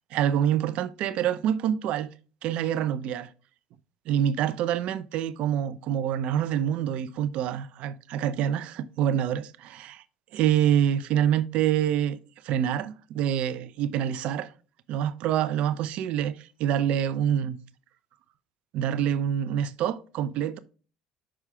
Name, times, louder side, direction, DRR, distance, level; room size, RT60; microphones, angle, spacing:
voice 1, 0.1-2.1 2.4-3.3 4.1-10.0 10.3-12.2 12.4-14.5 14.9-17.6 18.7-20.6, right 10 dB, 65° right, 0.6 m, -26 dB
6.2 x 4.7 x 4.4 m
supercardioid pair, 75°, 2 cm